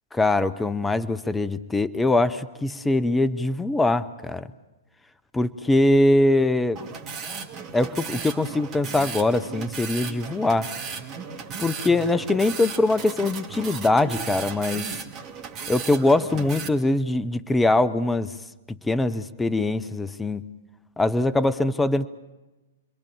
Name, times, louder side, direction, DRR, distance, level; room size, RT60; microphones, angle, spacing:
voice 1, 0.1-4.5 5.3-6.8 7.7-10.7 11.6-14.9 15.7-18.3 18.8-20.4 21.0-22.1, left 2 dB, 10° left, 13 dB, 0.8 m, -22 dB
sound 1, 6.8-16.7, right 5 dB, 25° right, 2.5 m, -35 dB
29.0 x 22.5 x 7.3 m, 1.1 s
figure-of-eight pair, 110°, 0 cm